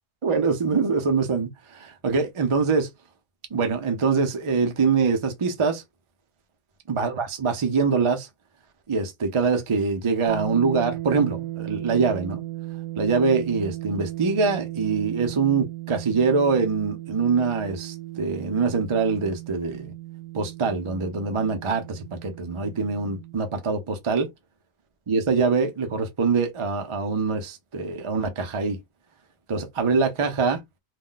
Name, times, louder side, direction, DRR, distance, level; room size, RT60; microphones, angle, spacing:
voice 1, 0.2-2.9 3.5-5.8 6.9-8.3 8.9-12.4 13.0-19.9 20.3-24.3 25.1-28.8 29.5-30.6, right 4 dB, 45° right, 0.4 m, -24 dB
sound 1, 10.3-23.4, right 16 dB, 70° right, 0.9 m, -36 dB
2.3 x 2.2 x 3.8 m
omnidirectional pair, 1.4 m